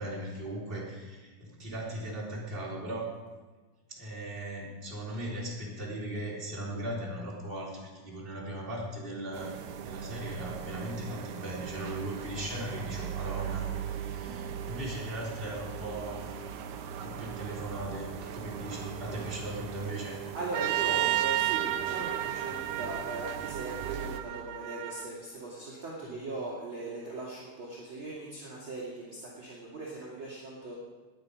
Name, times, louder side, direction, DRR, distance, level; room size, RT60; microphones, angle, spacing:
voice 1, 0.0-3.1 3.9-16.3 16.9-20.2 26.0-26.2, right 1 dB, 15° right, -5 dB, 3.7 m, -38 dB
sound 1, 9.3-24.2, right 8 dB, 70° right, 1.9 m, -39 dB
voice 2, 20.3-30.7, right 2 dB, 35° right, -5 dB, 3.0 m, -39 dB
Trumpet, 20.5-25.1, right 15 dB, 90° right, 2.7 m, -32 dB
20.5 x 9.4 x 5.2 m, 1.3 s
omnidirectional pair, 4.5 m